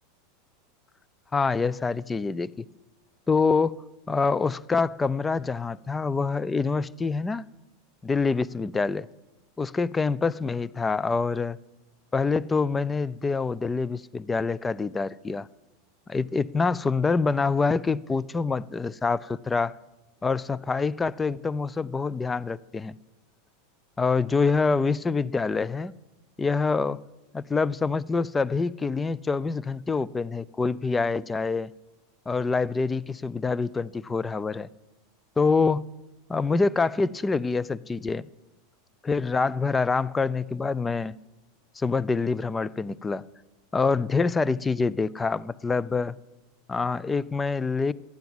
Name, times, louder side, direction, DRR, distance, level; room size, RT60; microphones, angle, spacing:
voice 1, 1.3-2.7 3.3-7.4 8.0-9.1 9.6-11.6 12.1-15.5 16.1-19.8 20.2-22.9 24.0-25.9 26.4-27.0 27.3-31.7 32.3-34.7 35.4-35.9 36.3-38.3 39.0-41.2 41.8-43.2 43.7-46.1 46.7-47.9, left 4 dB, 15° left, 0.4 m, -26 dB
13.0 x 9.0 x 7.9 m
hypercardioid pair, 110°, 0 cm